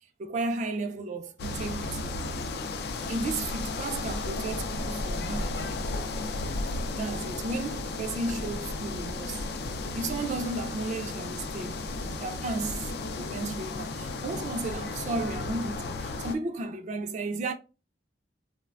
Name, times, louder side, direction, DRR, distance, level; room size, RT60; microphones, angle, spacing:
voice 1, 0.2-2.1 3.1-5.6 6.9-9.4 9.9-11.9 12.2-17.5, right 2 dB, 40° right, 0.3 m, -34 dB
sound 1, 1.4-16.4, left 3 dB, 60° left, 0.3 m, -34 dB
3.1 x 2.1 x 2.3 m
head